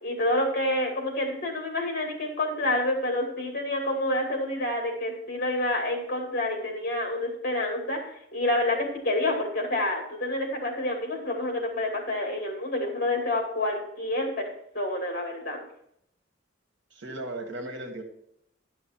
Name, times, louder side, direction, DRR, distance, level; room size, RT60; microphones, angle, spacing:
voice 1, 0.0-8.0 8.3-14.3 14.7-15.6, left 1 dB, 50° left, 1 dB, 2.5 m, -28 dB
voice 2, 16.9-18.0, right 1 dB, 75° right, 4 dB, 1.6 m, -36 dB
11.0 x 6.3 x 4.5 m, 0.71 s
head